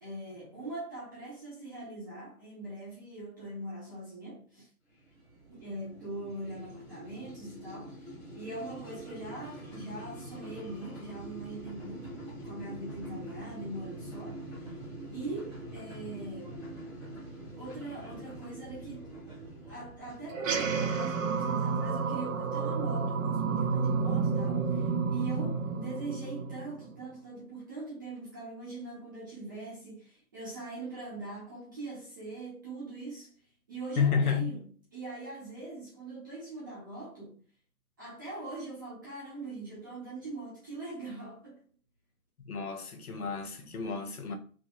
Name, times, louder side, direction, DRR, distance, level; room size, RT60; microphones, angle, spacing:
voice 1, 0.0-4.7 5.5-14.8 15.1-16.6 17.6-19.2 19.7-34.6 34.9-37.4 38.0-41.6, right 2 dB, 15° right, 0.7 m, -42 dB
sound 1, 4.9-21.6, right 1 dB, ahead, 1.1 m, -45 dB
sound 2, 20.3-27.0, right 5 dB, 65° right, 0.7 m, -30 dB
voice 2, 34.0-34.5 42.5-44.3, left 6 dB, 90° left, 1.1 m, -30 dB
3.6 x 2.8 x 2.4 m
hypercardioid pair, 165°, 43 cm